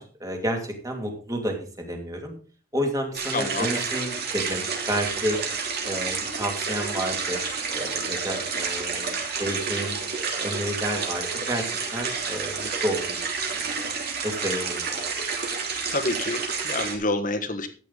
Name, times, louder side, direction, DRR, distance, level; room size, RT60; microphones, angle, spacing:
voice 1, 0.0-2.3 2.7-5.4 5.8-7.4 7.7-10.0 10.4-13.2 13.5-13.9 14.2-14.8, equal, 15° right, 2 dB, 2.4 m, -30 dB
sound 1, 3.1-16.9, right 5 dB, 50° right, 3.0 m, -30 dB
voice 2, 3.3-3.7 15.9-17.7, left 2 dB, 40° left, 7 dB, 1.4 m, -28 dB
13.5 x 9.0 x 4.0 m, 0.40 s
head